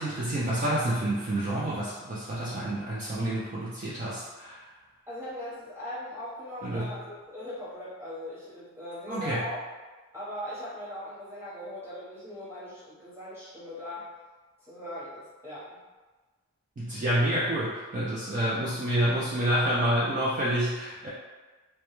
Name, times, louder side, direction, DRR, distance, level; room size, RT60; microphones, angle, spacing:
voice 1, 0.0-4.6 6.6-6.9 9.1-9.4 16.8-21.1, right 1 dB, 35° right, -9 dB, 0.4 m, -28 dB
voice 2, 5.1-9.6 10.1-14.1 14.6-15.8, left 1 dB, 10° right, -10 dB, 0.8 m, -40 dB
2.2 x 2.1 x 2.9 m, 1.3 s
head